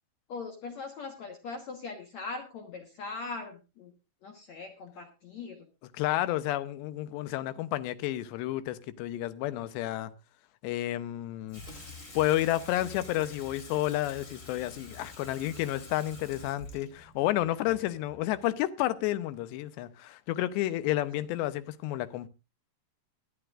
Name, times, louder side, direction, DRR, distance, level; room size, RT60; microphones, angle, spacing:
voice 1, 0.3-3.9 4.2-5.7, left 4 dB, 60° left, 2.0 m, -40 dB
voice 2, 5.9-10.1 10.6-11.6 12.1-22.3, left 15 dB, 85° left, 3.1 m, -31 dB
Water tap faucet / Sink (filling or washing), 11.5-18.5, left 3 dB, 20° left, 2.3 m, -48 dB
20.5 x 11.5 x 2.5 m
omnidirectional pair, 4.9 m